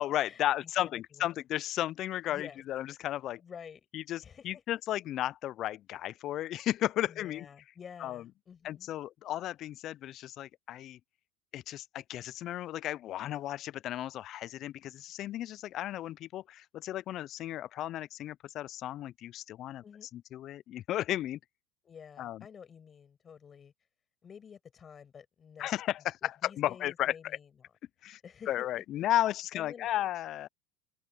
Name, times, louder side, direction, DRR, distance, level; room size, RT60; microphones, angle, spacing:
voice 1, 0.0-3.4 3.9-7.5 8.0-8.2 8.6-11.0 11.5-19.8 20.1-21.4 22.2-22.4 25.6-27.4 28.0-28.2 28.5-30.5, left 13 dB, 50° left, 0.5 m, -34 dB
voice 2, 0.8-1.3 2.3-2.6 3.4-3.8 4.2-4.6 7.1-8.9 19.8-20.1 21.8-23.7 24.2-25.7 26.2-27.5 28.2-28.8 29.5-29.9, left 7 dB, 30° left, 6.1 m, -50 dB
hypercardioid pair, 95°, 0 cm